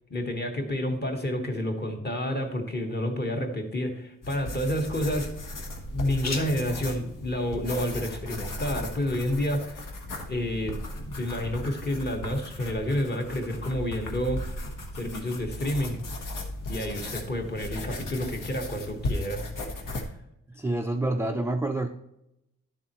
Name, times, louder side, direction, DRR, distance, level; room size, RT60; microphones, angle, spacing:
voice 1, 0.1-5.3 5.9-9.9 10.3-10.8 11.0-14.4 15.0-16.3 16.7-19.5, left 1 dB, 30° left, 4 dB, 1.2 m, -29 dB
sound 1, 2.2-9.7, left 3 dB, 50° left, 1.2 m, -46 dB
sound 2, 4.2-20.0, left 1 dB, 70° left, 1.3 m, -36 dB
voice 2, 20.6-21.9, right 2 dB, 10° right, 4 dB, 0.3 m, -27 dB
11.5 x 7.3 x 3.0 m, 0.85 s
wide cardioid pair, 175°, 33 cm